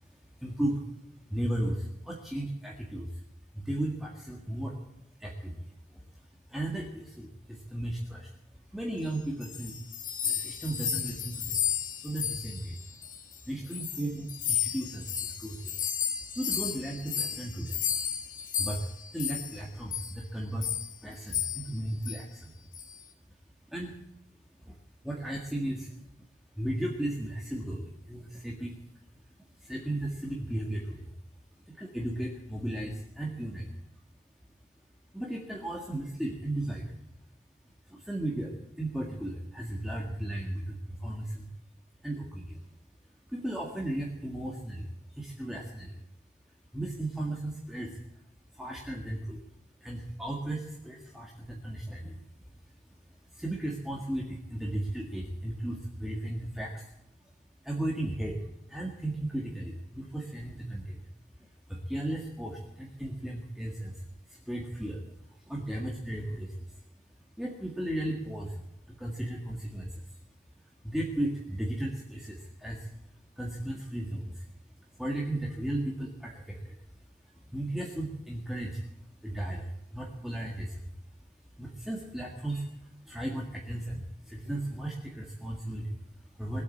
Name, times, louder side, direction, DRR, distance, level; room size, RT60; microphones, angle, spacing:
voice 1, 0.0-3.2 3.5-4.8 5.2-9.8 10.1-11.6 12.0-12.9 13.4-15.8 16.3-17.9 18.6-22.5 23.3-23.4 23.7-24.0 24.6-24.8 25.0-26.1 26.6-28.8 29.5-31.1 31.7-33.7 35.1-36.9 37.8-41.5 42.0-42.6 43.3-46.0 46.7-48.2 48.5-49.4 49.8-52.2 52.9-56.9 57.2-57.3 57.6-58.4 58.7-61.0 61.4-66.8 67.4-68.6 68.9-70.2 70.6-72.9 73.3-74.5 74.8-80.9 81.6-86.6, right 1 dB, ahead, -2 dB, 1.7 m, -36 dB
sound 1, 9.1-13.4 13.7-19.6 19.9-20.1 20.6-20.9 21.3-21.7 22.0-22.2 22.7-23.0, left 9 dB, 45° left, 2.2 m, -33 dB
20.0 x 8.4 x 8.5 m, 0.89 s
head